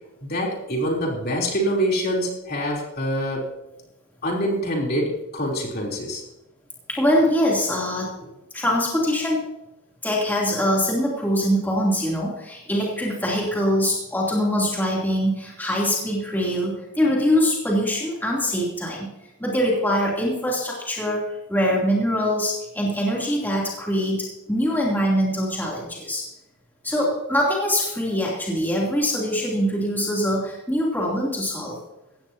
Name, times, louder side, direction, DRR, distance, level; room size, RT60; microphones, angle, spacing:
voice 1, 0.2-3.5 4.2-6.2, equal, 45° left, -1 dB, 3.4 m, -25 dB
voice 2, 6.9-9.5 10.0-19.1 19.4-26.3 26.8-31.8, equal, 10° left, -4 dB, 3.0 m, -23 dB
18.0 x 15.5 x 2.9 m, 0.90 s
head